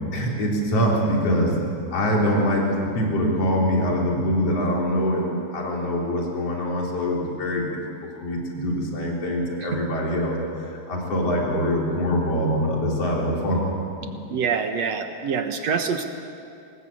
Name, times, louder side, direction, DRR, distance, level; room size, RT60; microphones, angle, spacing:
voice 1, 0.1-1.6 1.9-7.7 8.1-13.6 14.0-14.1, equal, 55° left, -2 dB, 4.9 m, -24 dB
voice 2, 14.3-16.0, right 6 dB, 65° right, 6 dB, 2.4 m, -25 dB
25.5 x 20.0 x 8.6 m, 2.5 s
omnidirectional pair, 3.3 m